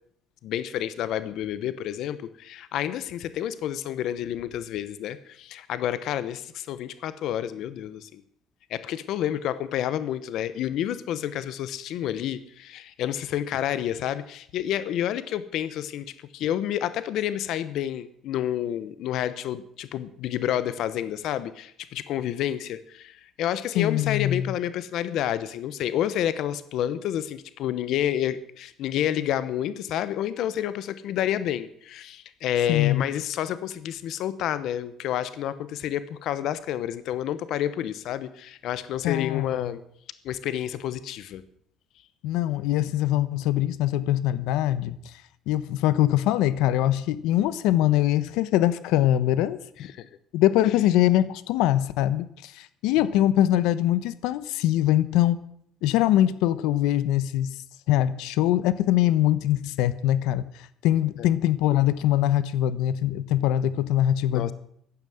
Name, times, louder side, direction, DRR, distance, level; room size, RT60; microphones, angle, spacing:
voice 1, 0.4-8.2 8.7-16.1 16.3-39.8 40.2-41.4 49.8-50.1 61.2-61.3 64.3-64.5, left 11 dB, 55° left, 14 dB, 0.9 m, -29 dB
voice 2, 23.7-24.5 32.7-33.0 39.0-39.5 42.2-45.0 45.5-49.6 50.3-55.4 55.8-57.6 57.9-60.5 60.8-64.5, left 13 dB, 85° left, 15 dB, 1.0 m, -23 dB
15.0 x 11.0 x 7.8 m, 0.68 s
cardioid pair, 180°, 0 cm